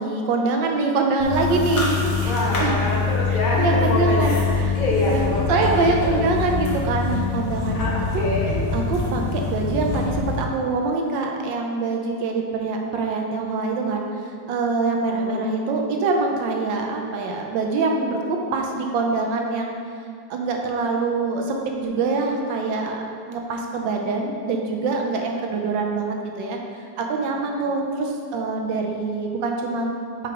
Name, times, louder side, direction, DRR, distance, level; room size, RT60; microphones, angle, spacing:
voice 1, 0.0-2.3 2.6-2.8 3.6-7.8 8.1-8.2 8.7-19.7 20.3-29.9, right 3 dB, 85° right, 1 dB, 1.4 m, -24 dB
sound 1, 1.2-10.4, left 5 dB, 75° left, 1.8 m, -24 dB
voice 2, 2.2-4.4 4.7-6.2 7.7-8.6 15.1-15.5, left 1 dB, 55° left, -4 dB, 1.3 m, -26 dB
4.9 x 4.7 x 4.8 m, 2.3 s
omnidirectional pair, 2.0 m